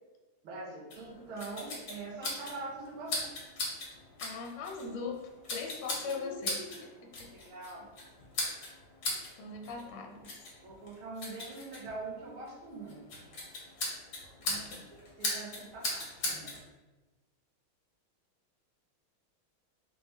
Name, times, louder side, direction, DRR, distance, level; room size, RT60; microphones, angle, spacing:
voice 1, 0.4-3.3 6.0-6.7 7.3-7.9 10.6-13.0 14.4-14.7 15.2-16.6, right 3 dB, 80° right, -3 dB, 1.9 m, -43 dB
sound 1, 0.9-16.6, left 2 dB, 50° left, 1.7 m, -40 dB
voice 2, 4.2-7.3 9.4-10.5 14.4-14.9, left 4 dB, 75° left, 2 dB, 1.4 m, -41 dB
4.7 x 3.5 x 3.1 m, 1.2 s
omnidirectional pair, 2.3 m